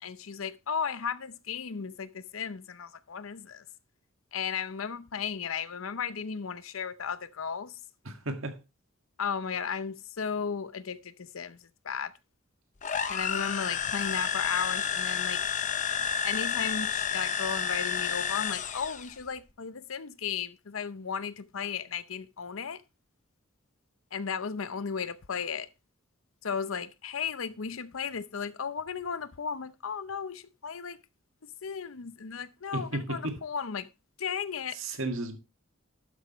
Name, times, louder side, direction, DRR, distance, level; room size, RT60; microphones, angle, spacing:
voice 1, 0.0-3.6 4.3-7.8 9.2-11.6 11.8-12.1 13.1-15.4 16.2-22.8 24.1-25.7 26.4-31.0 31.4-33.9 34.2-34.8, left 6 dB, 80° left, 0.7 m, -35 dB
voice 2, 8.1-8.6 32.7-33.4 34.7-35.4, right 2 dB, 75° right, 1.8 m, -34 dB
sound 1, 12.8-19.1, left 7 dB, 40° left, 0.7 m, -30 dB
11.5 x 8.3 x 3.0 m
head